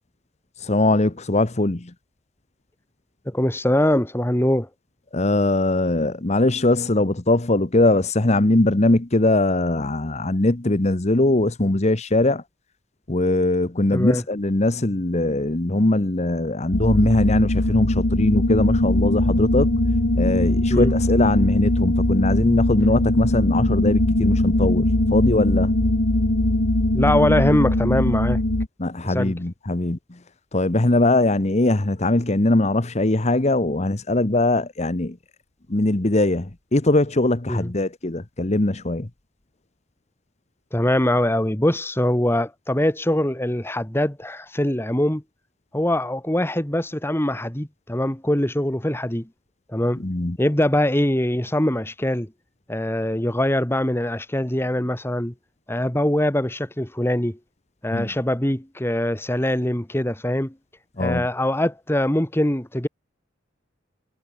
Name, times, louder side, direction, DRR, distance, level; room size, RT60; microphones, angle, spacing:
voice 1, 0.6-1.9 5.1-12.4 13.1-19.7 20.1-25.7 28.8-30.2 30.5-35.2 35.7-39.1 50.0-50.4 57.9-58.1 61.0-61.3, left 2 dB, 35° left, 1.1 m, -21 dB
voice 2, 3.2-4.7 13.9-14.2 20.7-20.9 26.9-28.4 29.0-29.3 37.5-37.7 40.7-45.2 45.7-49.3 49.7-50.0 50.4-52.3 52.7-55.3 55.7-57.4 57.8-60.5 61.0-62.9, left 1 dB, 10° left, 1.5 m, -22 dB
sound 1, 16.7-28.7, left 1 dB, 65° left, 1.6 m, -20 dB
head